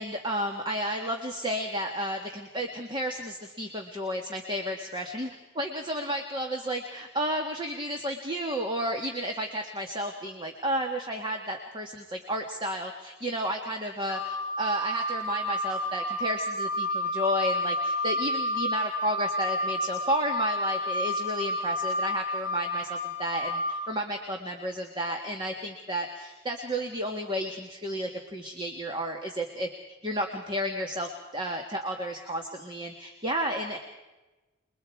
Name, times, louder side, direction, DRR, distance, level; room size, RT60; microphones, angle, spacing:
voice 1, 0.0-5.3 5.6-29.7 30.0-33.8, equal, 25° right, 3 dB, 1.7 m, -32 dB
Wind instrument woodwind instrument, 14.1-23.7, left 1 dB, 25° left, 6.8 m, -30 dB
29.0 x 22.5 x 4.7 m, 1.1 s
head